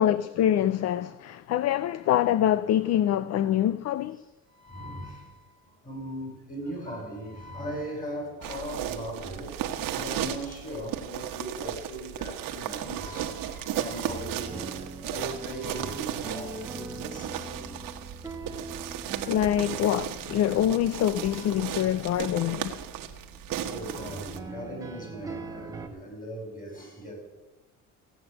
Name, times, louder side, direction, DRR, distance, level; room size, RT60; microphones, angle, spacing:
voice 1, 0.0-4.2 19.3-22.8, left 11 dB, 45° left, 0.5 m, -25 dB
voice 2, 4.2-17.9 19.2-19.4 21.2-21.7 22.9-23.1 23.7-27.3, right 1 dB, 25° left, 5.2 m, -39 dB
sound 1, 8.4-24.4, right 10 dB, 70° right, 1.3 m, -35 dB
sound 2, 13.9-25.9, right 3 dB, 10° right, 1.4 m, -43 dB
16.0 x 8.7 x 7.8 m
cardioid pair, 135°, 35 cm